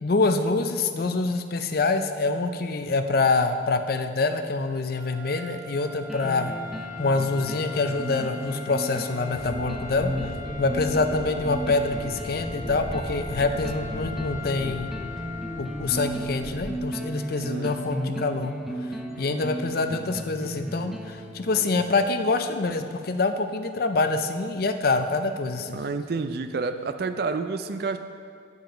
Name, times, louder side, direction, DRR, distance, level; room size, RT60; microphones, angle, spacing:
voice 1, 0.0-6.6 7.0-10.3 10.6-14.9 15.6-18.5 19.2-25.8, left 3 dB, 50° left, 8 dB, 0.5 m, -26 dB
sound 1, 4.8-16.4, left 5 dB, 35° right, 1.9 m, -41 dB
sound 2, 6.1-22.0, equal, ahead, 0.5 m, -35 dB
sound 3, 9.3-16.7, equal, 80° left, 1.5 m, -38 dB
voice 2, 17.5-17.9 25.7-28.0, right 4 dB, 55° right, 9 dB, 0.4 m, -29 dB
8.1 x 7.1 x 5.0 m, 2.2 s
head